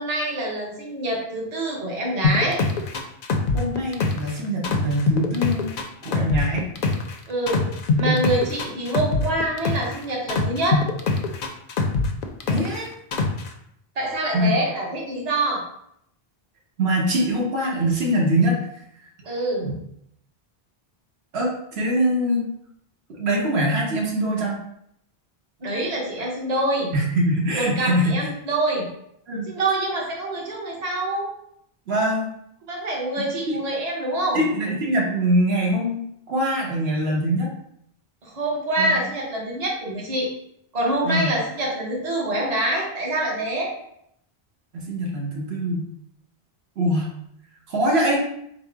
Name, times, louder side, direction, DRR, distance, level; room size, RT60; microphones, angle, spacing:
voice 1, 0.0-2.6 7.3-7.7 8.0-10.8 14.0-15.6 19.2-19.7 25.6-26.9 27.6-28.9 29.5-31.3 32.7-34.4 38.2-40.3 40.7-43.7, right 1 dB, 40° right, -2 dB, 0.9 m, -25 dB
sound 1, 2.2-4.3 4.6-7.1 7.5-10.0 10.3-12.8 13.1-13.5, left 4 dB, 65° left, 0.7 m, -23 dB
voice 2, 3.5-5.7 6.0-6.7 8.0-8.2 12.5-12.9 14.3-14.5 16.8-18.6 19.6-19.7 21.3-22.5 23.1-24.6 26.9-28.3 29.3-29.5 31.9-32.3 33.5-33.6 34.3-36.0 36.3-37.5 38.8-38.9 41.0-41.3 44.7-45.9 46.8-47.1 47.7-48.2, equal, 90° right, -2 dB, 1.2 m, -23 dB
4.1 x 2.0 x 4.5 m, 0.74 s
omnidirectional pair, 1.0 m